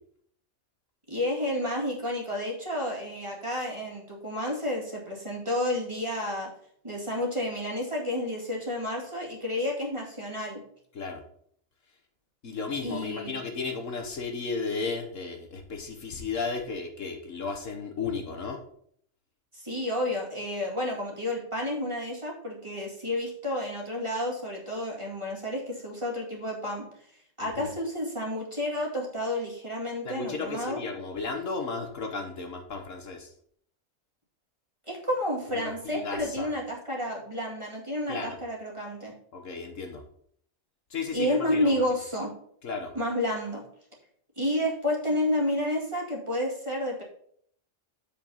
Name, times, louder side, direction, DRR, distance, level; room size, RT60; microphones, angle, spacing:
voice 1, 1.1-6.5 6.8-10.6 12.8-13.3 19.5-26.8 27.4-30.8 34.9-39.1 41.1-42.3 42.9-43.6 44.4-47.0, left 1 dB, 20° right, -2 dB, 2.1 m, -30 dB
voice 2, 12.4-18.6 27.4-27.7 30.0-33.3 35.5-36.5 38.1-38.4 39.3-40.0 40.9-41.8 42.6-42.9, left 4 dB, 60° left, 3 dB, 1.4 m, -34 dB
7.4 x 5.3 x 5.4 m, 0.63 s
omnidirectional pair, 1.5 m